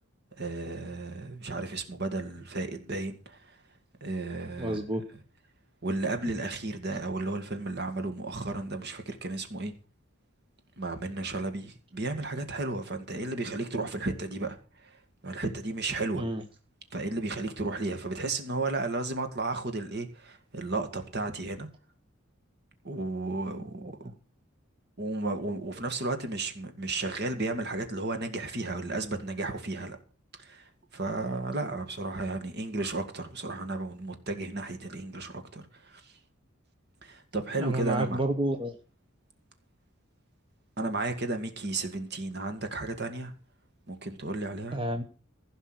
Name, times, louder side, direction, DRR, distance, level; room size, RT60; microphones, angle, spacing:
voice 1, 0.4-3.5 4.0-4.8 5.8-9.7 10.8-14.6 14.8-15.0 15.2-16.2 16.9-21.7 22.8-23.8 25.0-30.0 30.4-36.0 37.0-38.2 40.8-43.3 43.9-44.8, right 2 dB, 55° right, 2.1 m, -33 dB
voice 2, 4.6-5.0 16.1-16.4 23.5-23.9 37.6-38.8 44.7-45.0, right 1 dB, 25° right, 1.1 m, -30 dB
16.0 x 5.5 x 8.0 m
head